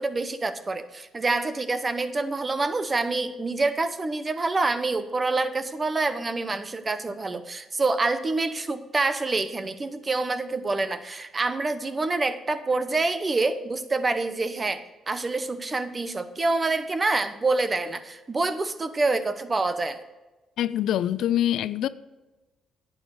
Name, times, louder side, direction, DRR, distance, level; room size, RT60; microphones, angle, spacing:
voice 1, 0.0-20.0, right 3 dB, 30° right, 0.9 m, -27 dB
voice 2, 20.6-21.9, left 11 dB, 80° left, 0.4 m, -24 dB
11.0 x 8.8 x 4.8 m
cardioid pair, 90°, 0 cm